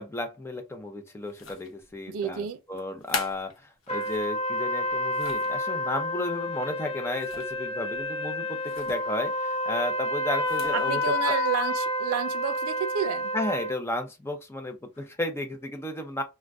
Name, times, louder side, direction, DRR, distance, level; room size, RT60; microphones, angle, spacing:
voice 1, 0.0-11.3 13.3-16.2, left 2 dB, 10° left, 0.5 m, -33 dB
sound 1, 1.3-1.9 2.8-4.3 4.8-5.6 7.1-7.6 7.9-8.1 8.7-9.0 10.3-10.8, left 4 dB, 65° left, 0.7 m, -39 dB
voice 2, 2.1-2.6 10.7-13.3, right 6 dB, 85° right, 0.4 m, -30 dB
sound 2, 3.9-13.8, left 1 dB, 30° left, 0.9 m, -29 dB
2.5 x 2.1 x 3.4 m
head